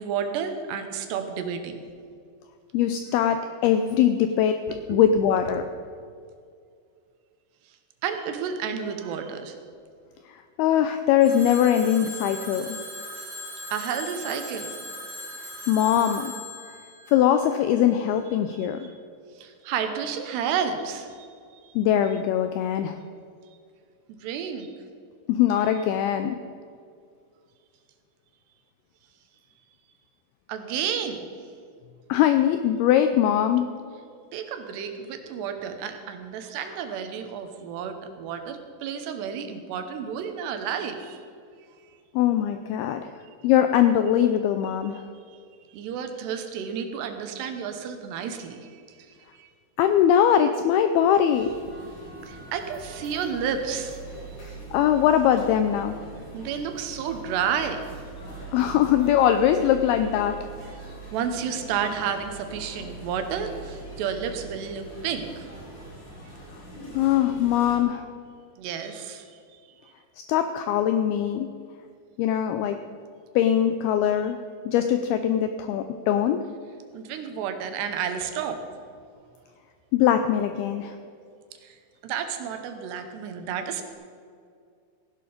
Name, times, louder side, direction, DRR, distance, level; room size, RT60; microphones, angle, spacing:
voice 1, 0.0-1.8 4.7-5.0 8.0-9.6 13.7-14.8 19.4-21.3 21.6-21.7 24.1-24.7 30.5-31.2 34.3-41.2 44.9-45.4 45.7-48.8 49.4-49.5 52.2-54.0 56.3-57.9 61.1-65.5 68.6-69.6 76.9-78.6 81.6-81.8 82.0-83.9, right 7 dB, 75° right, 7 dB, 3.0 m, -31 dB
voice 2, 2.7-4.6 4.9-5.7 10.3-12.8 15.7-16.3 17.1-18.9 21.8-23.0 25.3-26.4 32.1-33.7 42.2-43.1 43.4-45.0 49.8-51.5 54.7-56.0 58.5-60.4 67.0-68.1 70.3-71.5 72.2-72.8 73.4-74.4 74.7-76.5 79.9-81.0, left 10 dB, 85° left, 8 dB, 2.2 m, -21 dB
Telephone, 11.2-18.0, left 1 dB, 25° right, 3.7 m, -39 dB
sound 1, 51.3-67.8, right 2 dB, 45° left, 4.3 m, -42 dB
16.0 x 11.0 x 5.1 m, 2.3 s
omnidirectional pair, 5.1 m